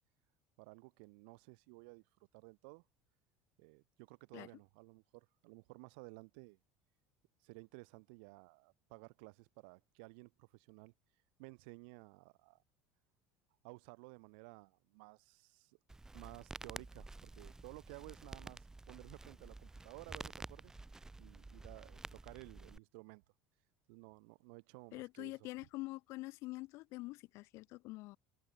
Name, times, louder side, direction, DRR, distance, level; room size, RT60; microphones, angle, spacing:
voice 1, 0.6-2.1 2.3-2.8 3.6-6.6 7.4-10.9 11.4-12.6 13.6-15.8 16.1-20.7 21.2-23.2 23.9-25.5, right 32 dB, 80° right, 7.5 m, -55 dB
Crackle, 15.9-22.8, right 2 dB, 10° right, 1.7 m, -51 dB
voice 2, 24.9-28.2, left 21 dB, 65° left, 1.0 m, -45 dB
supercardioid pair, 125°, 5 cm